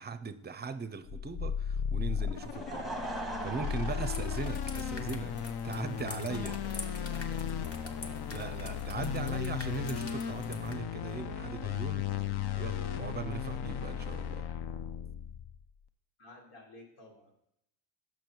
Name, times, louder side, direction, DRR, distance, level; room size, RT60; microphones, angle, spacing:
voice 1, 0.0-3.0 3.4-5.4 5.6-6.6 8.3-12.1 12.6-14.5, right 5 dB, 20° right, 12 dB, 0.6 m, -39 dB
sound 1, 1.1-15.6, left 8 dB, 50° left, 0.7 m, -35 dB
Laughter / Crowd, 2.2-9.1, right 2 dB, ahead, 1.0 m, -44 dB
sound 2, 4.0-10.7, left 3 dB, 30° left, 1.1 m, -47 dB
voice 2, 6.6-7.8 16.2-17.3, left 2 dB, 75° left, 0 dB, 2.0 m, -53 dB
6.2 x 5.0 x 4.6 m, 0.81 s
hypercardioid pair, 60°, 50 cm